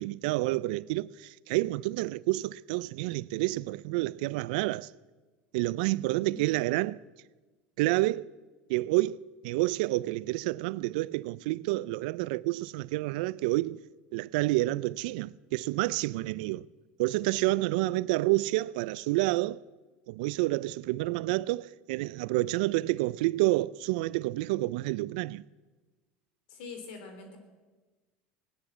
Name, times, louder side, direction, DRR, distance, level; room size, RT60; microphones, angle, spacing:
voice 1, 0.0-4.9 5.5-7.0 7.8-8.3 8.7-13.8 14.1-16.7 17.0-19.6 20.1-25.4, right 19 dB, 80° right, 0.4 m, -29 dB
voice 2, 26.5-27.4, left 4 dB, 85° left, 3.4 m, -44 dB
18.0 x 9.9 x 7.3 m
supercardioid pair, 105°, 5 cm